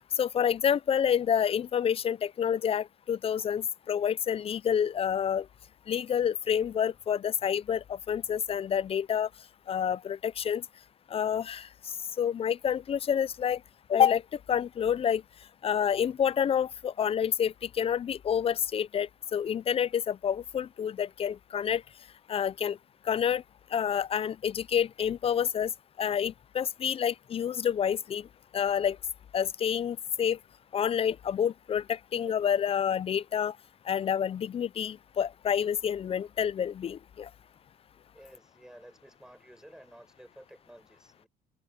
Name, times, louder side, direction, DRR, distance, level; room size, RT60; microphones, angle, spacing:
voice 1, 0.2-5.5 5.9-9.3 9.7-10.6 11.1-11.7 12.2-13.6 13.9-14.2 14.5-15.2 15.6-21.8 22.3-22.8 23.1-23.4 23.7-25.7 26.0-28.3 28.5-29.0 29.3-30.4 30.7-33.5 33.9-37.3, left 8 dB, 35° left, 0.4 m, -28 dB
voice 2, 38.1-41.3, right 1 dB, 5° right, 6.7 m, -53 dB
cardioid pair, 110°, 17 cm